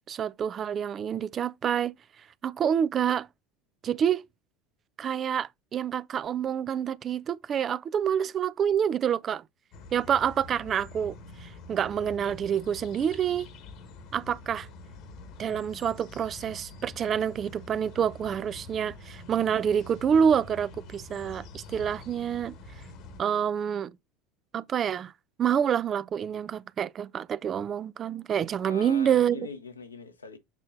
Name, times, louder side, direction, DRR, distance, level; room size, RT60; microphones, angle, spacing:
voice 1, 0.1-1.9 2.4-3.3 3.8-4.3 5.0-9.4 9.9-13.5 14.1-14.7 15.4-22.6 23.2-23.9 24.5-25.1 25.4-29.4, right 8 dB, 35° right, 0.4 m, -27 dB
sound 1, 9.7-23.2, left 2 dB, 55° left, 1.2 m, -46 dB
voice 2, 28.6-30.4, left 5 dB, 85° left, 1.0 m, -42 dB
7.4 x 6.3 x 2.6 m
figure-of-eight pair, 70°, 0 cm